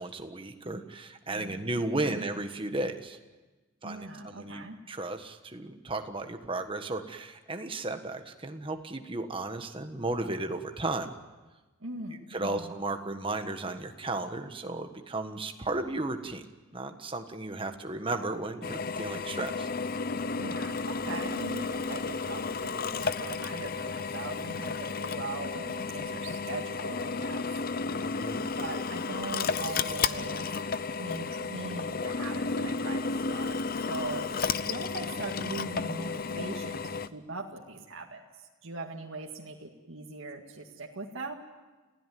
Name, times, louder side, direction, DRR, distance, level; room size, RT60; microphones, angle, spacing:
voice 1, 0.0-3.2 3.8-11.1 12.3-16.4 16.7-19.7 28.0-28.5 34.3-34.4, right 2 dB, 25° right, 6 dB, 1.5 m, -34 dB
voice 2, 1.3-2.3 3.8-4.8 11.8-12.7 20.4-27.5 28.6-41.3, right 3 dB, 70° right, 0 dB, 2.0 m, -40 dB
Drill, 18.6-37.1, left 4 dB, 45° left, 0.7 m, -33 dB
29.0 x 16.0 x 9.4 m, 1.2 s
head